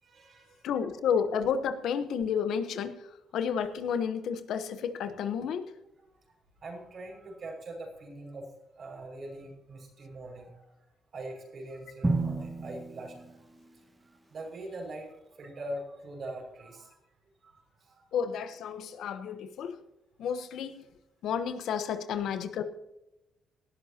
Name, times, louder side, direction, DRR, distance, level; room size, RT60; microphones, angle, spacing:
voice 1, 0.0-0.6 6.6-8.5 8.8-10.7 11.1-13.5 14.3-15.1 15.4-17.0 17.4-18.0, right 1 dB, 50° right, 1 dB, 5.9 m, -42 dB
voice 2, 0.6-3.0 3.3-5.7 18.1-19.8 20.2-20.8 21.2-22.6, left 7 dB, 75° left, 10 dB, 1.1 m, -31 dB
Drum, 12.0-14.1, right 3 dB, 20° right, 1.5 m, -32 dB
18.5 x 12.0 x 2.9 m, 0.93 s
cardioid pair, 90°, 0 cm